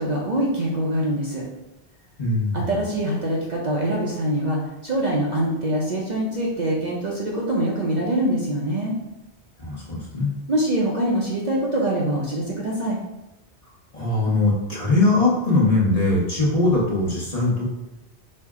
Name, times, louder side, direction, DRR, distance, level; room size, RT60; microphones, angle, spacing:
voice 1, 0.0-1.4 2.5-8.9 10.5-13.0, right 1 dB, 50° right, -3 dB, 0.6 m, -24 dB
voice 2, 2.2-2.8 9.6-10.4 13.9-17.6, left 2 dB, 35° left, -5 dB, 0.9 m, -21 dB
4.5 x 2.1 x 3.5 m, 0.95 s
omnidirectional pair, 1.1 m